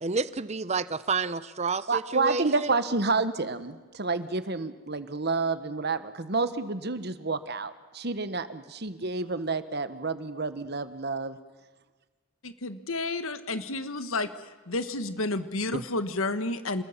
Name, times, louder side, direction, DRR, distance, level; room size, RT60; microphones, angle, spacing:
voice 1, 0.0-2.7 15.7-15.8, right 4 dB, 30° right, 15 dB, 0.7 m, -30 dB
voice 2, 1.9-11.4, right 3 dB, 50° right, 12 dB, 1.3 m, -29 dB
voice 3, 12.4-14.3 14.7-16.8, left 2 dB, 80° left, 11 dB, 1.5 m, -31 dB
27.5 x 20.5 x 7.4 m, 1.3 s
head